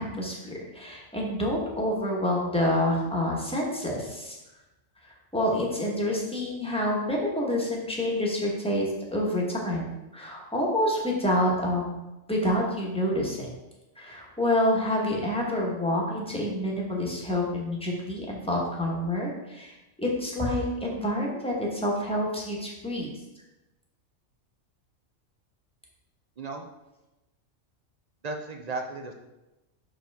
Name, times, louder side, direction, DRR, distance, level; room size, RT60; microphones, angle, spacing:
voice 1, 0.0-4.4 5.3-12.0 12.3-13.5 14.0-23.1, left 1 dB, 5° left, -3 dB, 1.1 m, -28 dB
voice 2, 28.2-29.1, right 3 dB, 55° right, 4 dB, 0.4 m, -34 dB
5.9 x 5.1 x 3.5 m, 1.0 s
omnidirectional pair, 1.3 m